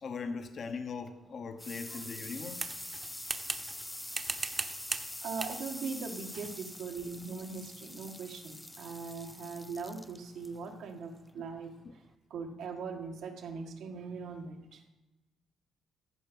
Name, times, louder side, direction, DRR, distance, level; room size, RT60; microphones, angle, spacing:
voice 1, 0.0-2.7, left 5 dB, 55° left, 7 dB, 1.0 m, -39 dB
Running Sink Water, 0.9-12.1, left 1 dB, 10° left, 0.4 m, -45 dB
sound 1, 2.6-3.9 4.1-5.1 5.4-5.6 6.3-6.5, right 4 dB, 35° right, 1.0 m, -37 dB
voice 2, 5.2-11.7 12.3-14.8, right 5 dB, 80° right, 3 dB, 1.6 m, -40 dB
14.5 x 6.0 x 5.4 m, 1.1 s
cardioid pair, 90°, 0 cm